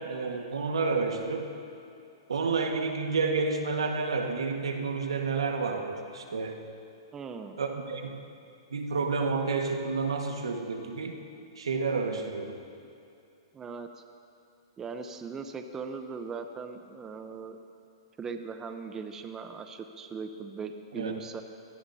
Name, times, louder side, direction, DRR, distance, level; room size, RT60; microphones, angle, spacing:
voice 1, 0.0-1.5 2.3-6.6 7.6-8.2 8.7-11.2 11.6-12.5 20.9-21.1, right 4 dB, 90° right, 3 dB, 1.7 m, -30 dB
voice 2, 7.1-7.6 13.5-13.9 14.8-17.6 18.2-21.4, right 5 dB, 20° right, 6 dB, 0.8 m, -39 dB
23.5 x 17.0 x 2.8 m, 2.6 s
hypercardioid pair, 130°, 3 cm